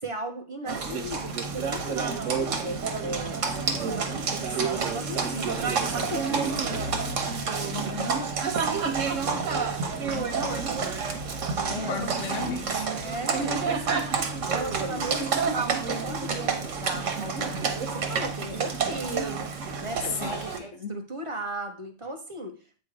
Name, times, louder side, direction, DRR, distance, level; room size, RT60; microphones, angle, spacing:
voice 1, 0.0-6.8 11.6-12.6 12.9-14.1 14.3-19.5 19.8-22.8, right 1 dB, 30° right, 0.8 m, -37 dB
Livestock farm animals working animals, 0.7-20.6, right 5 dB, 85° right, 1.3 m, -29 dB
voice 2, 7.7-8.3 10.1-11.0 11.7-12.9 20.2-21.0, left 5 dB, 80° left, 1.1 m, -36 dB
8.2 x 3.2 x 4.8 m
omnidirectional pair, 1.3 m